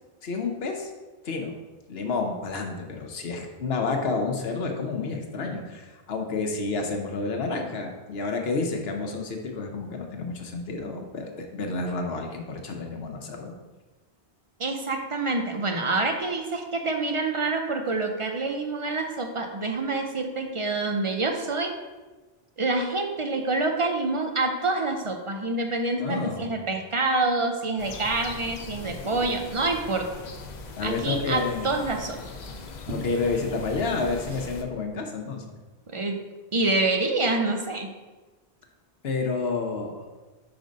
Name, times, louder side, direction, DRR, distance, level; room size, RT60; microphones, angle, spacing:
voice 1, 0.2-0.9 1.2-1.5 1.9-13.5 26.0-26.4 30.8-31.7 32.9-35.6 39.0-40.1, left 3 dB, 75° left, 3 dB, 1.0 m, -30 dB
voice 2, 14.6-21.7 22.6-30.1 30.8-32.2 35.9-36.2 36.5-37.9, right 3 dB, 40° right, 4 dB, 0.5 m, -27 dB
sound 1, 27.8-34.6, left 4 dB, 50° left, 0.6 m, -41 dB
Liquid, 27.9-34.7, equal, 75° right, 1.5 m, -44 dB
5.1 x 3.9 x 5.2 m, 1.2 s
omnidirectional pair, 1.0 m